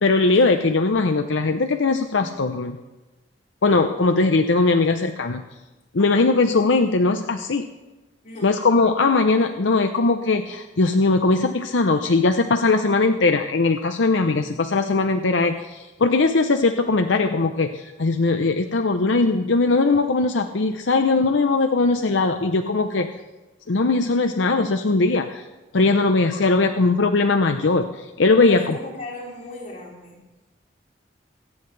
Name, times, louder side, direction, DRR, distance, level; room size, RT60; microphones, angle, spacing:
voice 1, 0.0-2.8 3.6-5.4 5.9-7.7 8.4-23.1 23.7-25.5 25.7-28.8, left 3 dB, 75° left, 6 dB, 0.7 m, -20 dB
voice 2, 6.0-6.3 8.2-8.7 28.4-30.2, left 2 dB, 40° left, -6 dB, 4.8 m, -37 dB
25.5 x 9.6 x 3.3 m, 1.1 s
head